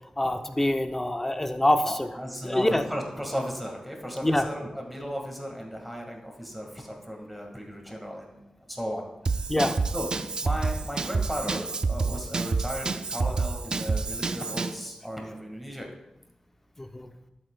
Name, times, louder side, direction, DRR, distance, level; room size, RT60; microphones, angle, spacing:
voice 1, 0.2-2.1 2.4-2.8 4.2-4.5 9.5-9.8 16.8-17.1, left 1 dB, 15° left, 6 dB, 0.6 m, -25 dB
voice 2, 1.8-9.1 9.9-10.1 10.4-15.9, equal, ahead, 0 dB, 1.7 m, -35 dB
Drum kit / Drum, 9.3-14.8, right 4 dB, 40° right, 0.4 m, -28 dB
12.0 x 7.9 x 2.2 m, 0.91 s
wide cardioid pair, 125°, 2 cm